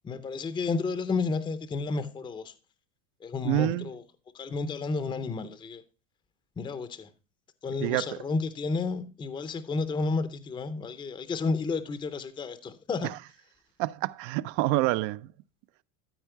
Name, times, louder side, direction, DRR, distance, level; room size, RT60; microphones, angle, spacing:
voice 1, 0.0-2.5 3.2-4.0 4.3-5.8 6.6-7.1 7.6-13.1, left 4 dB, 10° left, 0.6 m, -31 dB
voice 2, 3.4-3.9 7.8-8.2 13.0-13.2 13.8-15.3, right 17 dB, 50° right, 0.4 m, -27 dB
13.0 x 4.6 x 4.5 m
supercardioid pair, 140°, 47 cm